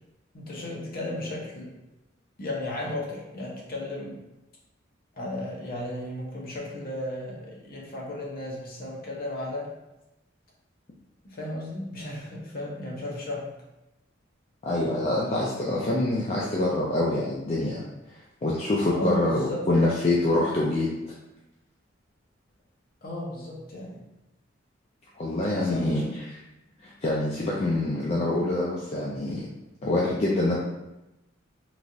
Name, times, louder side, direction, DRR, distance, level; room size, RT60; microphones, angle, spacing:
voice 1, 0.3-1.7 2.4-4.2 5.1-9.7 11.2-13.5 18.9-19.7 23.0-24.1 25.6-26.1, left 1 dB, 50° left, -3 dB, 0.8 m, -34 dB
voice 2, 14.6-17.8 18.4-20.9 25.2-26.0 26.8-29.5 29.8-30.6, left 2 dB, 30° left, -5 dB, 0.4 m, -25 dB
3.1 x 2.4 x 2.6 m, 0.94 s
head